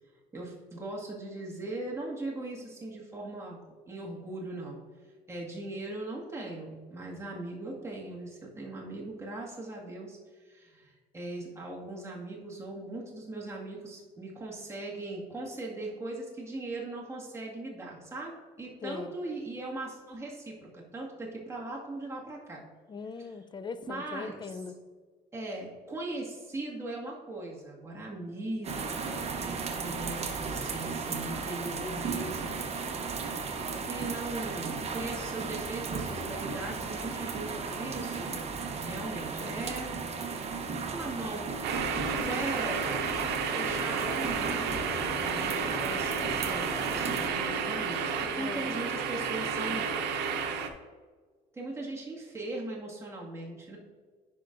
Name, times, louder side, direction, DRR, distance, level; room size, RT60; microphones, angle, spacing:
voice 1, 0.3-3.6 3.9-4.8 5.3-22.6 23.9-24.6 25.3-32.5 33.8-38.4 38.7-40.0 40.9-41.5 41.9-42.8 43.5-49.9 51.5-53.8, right 2 dB, 15° right, -4 dB, 2.0 m, -39 dB
voice 2, 18.8-19.1 22.9-24.8 48.4-48.8, left 5 dB, 25° left, 11 dB, 0.5 m, -40 dB
sound 1, 28.6-47.3, right 4 dB, 40° right, 0.9 m, -35 dB
sound 2, 41.6-50.7, right 5 dB, 85° right, 0.8 m, -31 dB
10.0 x 5.5 x 2.6 m, 1.5 s
cardioid pair, 110°, 17 cm